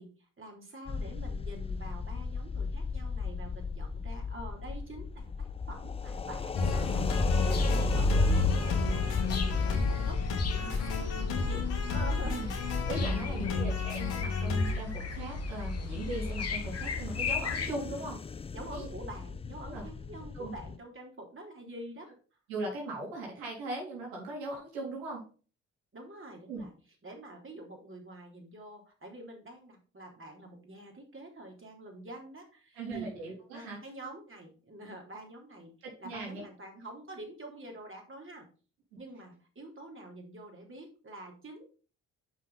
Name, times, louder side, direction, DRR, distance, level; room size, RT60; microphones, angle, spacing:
voice 1, 0.0-12.7 13.4-13.8 17.9-18.1 18.5-22.1 25.9-26.7 27.0-33.1 33.5-35.7 36.0-38.5 39.0-41.7, right 1 dB, 35° right, 0 dB, 3.6 m, -47 dB
sound 1, 0.9-20.8, left 5 dB, 15° left, 0.4 m, -36 dB
sound 2, 6.5-14.7, left 3 dB, 80° left, 2.6 m, -33 dB
sound 3, 6.6-17.7, left 3 dB, 40° left, 1.5 m, -33 dB
voice 2, 10.5-10.9 12.2-12.5 12.9-18.2 18.7-18.9 19.6-19.8 20.3-20.5 22.5-25.3 26.5-26.6 32.8-33.8 35.8-36.4 38.9-39.0, right 2 dB, 80° right, -2 dB, 3.6 m, -39 dB
7.4 x 5.8 x 4.2 m, 0.37 s
hypercardioid pair, 50°, 36 cm